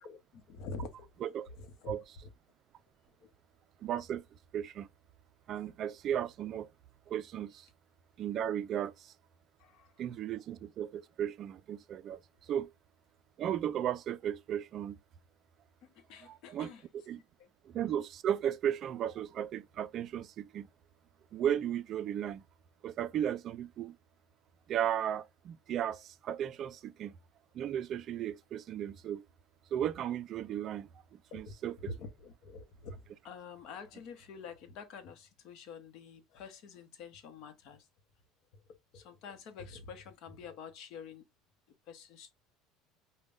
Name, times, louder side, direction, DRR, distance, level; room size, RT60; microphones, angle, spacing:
voice 1, 0.0-1.1 1.5-1.9 3.2-3.3 9.6-9.9 15.8-16.8 17.4-17.5 31.3-31.5 31.9-37.9 38.5-38.6 38.9-41.2 41.9-42.3, left 4 dB, 55° left, 0.8 m, -47 dB
voice 2, 3.8-4.2 4.5-4.9 5.5-6.7 7.1-7.7 8.2-9.1 10.0-12.2 12.5-12.7 13.4-15.0 16.3-16.7 17.1-17.2 17.7-20.7 21.3-22.4 22.8-24.0 24.7-27.1 27.5-29.2 29.7-30.9 31.3-31.8, right 10 dB, 40° right, 0.3 m, -35 dB
5.1 x 2.1 x 2.4 m
cardioid pair, 145°, 0 cm